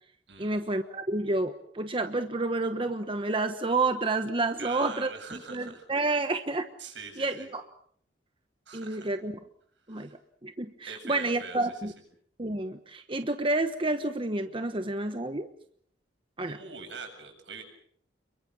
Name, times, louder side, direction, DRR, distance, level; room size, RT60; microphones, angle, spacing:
voice 1, 0.4-6.7 7.2-7.6 8.7-9.4 9.9-11.9 12.4-15.5 16.4-16.6, right 2 dB, 30° right, 8 dB, 1.1 m, -30 dB
voice 2, 4.6-6.2 6.8-7.5 8.7-9.0 9.9-10.1 10.8-11.9 16.5-17.6, right 4 dB, 80° right, 4 dB, 8.0 m, -43 dB
29.0 x 23.0 x 6.2 m, 0.62 s
head